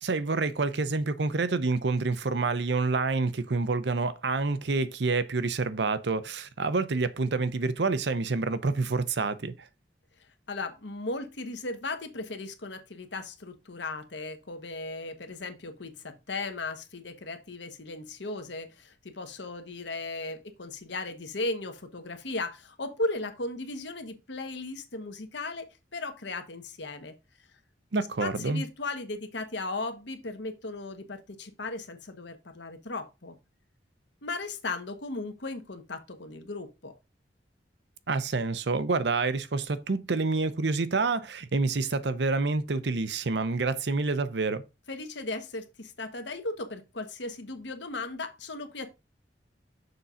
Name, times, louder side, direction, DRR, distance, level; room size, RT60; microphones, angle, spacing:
voice 1, 0.0-9.7 27.9-28.6 38.1-44.6, right 3 dB, 70° right, 0.7 m, -28 dB
voice 2, 10.5-27.1 28.2-33.4 34.2-36.9 44.9-48.9, left 2 dB, 75° left, 1.3 m, -36 dB
6.7 x 3.8 x 5.6 m
head